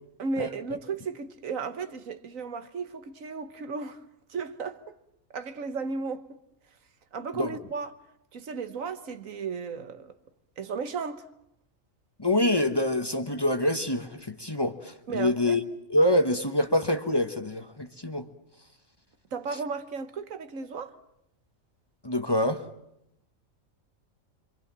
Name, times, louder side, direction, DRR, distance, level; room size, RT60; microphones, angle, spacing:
voice 1, 0.2-4.0 4.3-4.8 5.3-6.4 7.1-8.0 8.3-10.1 10.6-11.3 15.1-15.6 19.3-21.0, right 5 dB, 85° right, 1.7 m, -34 dB
voice 2, 12.2-15.6 15.9-18.2 22.0-22.6, left 1 dB, 20° left, 1.2 m, -26 dB
26.0 x 26.0 x 7.5 m
omnidirectional pair, 1.4 m